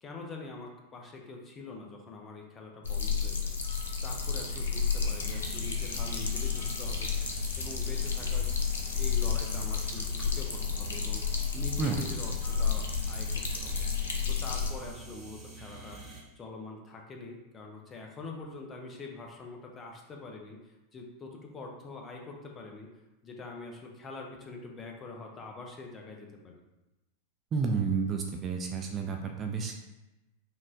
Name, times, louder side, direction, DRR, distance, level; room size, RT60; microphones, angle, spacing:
voice 1, 0.0-8.5 8.9-11.2 11.5-13.9 14.3-16.0 16.4-22.9 23.2-26.6, left 3 dB, 25° left, 1 dB, 0.7 m, -44 dB
sound 1, 2.8-14.7, left 6 dB, 65° left, 0.5 m, -31 dB
sound 2, 5.1-16.2, right 3 dB, 5° left, 1.1 m, -47 dB
voice 2, 27.5-29.7, right 5 dB, 25° right, 3 dB, 0.4 m, -30 dB
5.5 x 2.4 x 2.6 m, 1.0 s
figure-of-eight pair, 90°, 0 cm